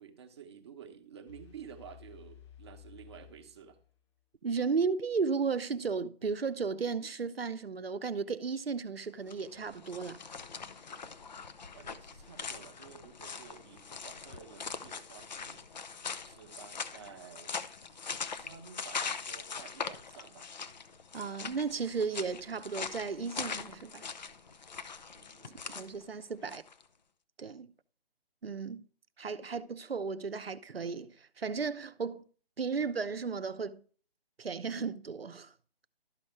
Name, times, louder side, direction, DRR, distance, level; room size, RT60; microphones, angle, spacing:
voice 1, 0.0-3.8 11.7-16.0 16.2-20.5 25.2-25.7 26.4-26.6, right 7 dB, 25° right, 1.0 m, -52 dB
sound 1, 1.3-4.2, left 10 dB, 30° left, 1.4 m, -55 dB
voice 2, 4.4-10.2 21.1-24.1 25.7-26.6 27.4-27.7 28.4-28.8 29.2-32.2 32.6-33.8 34.4-35.5, right 5 dB, 75° right, 0.7 m, -34 dB
sound 2, 9.2-26.8, left 5 dB, 45° left, 0.8 m, -42 dB
12.5 x 5.2 x 4.6 m
figure-of-eight pair, 145°, 30 cm